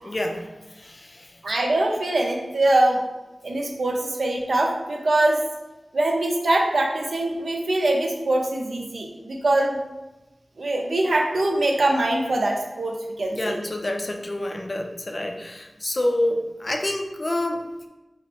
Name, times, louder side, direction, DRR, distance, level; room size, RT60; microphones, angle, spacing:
voice 1, 0.0-1.4 13.3-17.7, left 1 dB, 35° left, 3 dB, 0.5 m, -28 dB
voice 2, 1.4-3.0 3.4-5.4 5.9-9.8 10.6-13.6, right 2 dB, 70° right, 1 dB, 0.7 m, -23 dB
5.6 x 2.1 x 4.5 m, 1.1 s
wide cardioid pair, 90°, 0 cm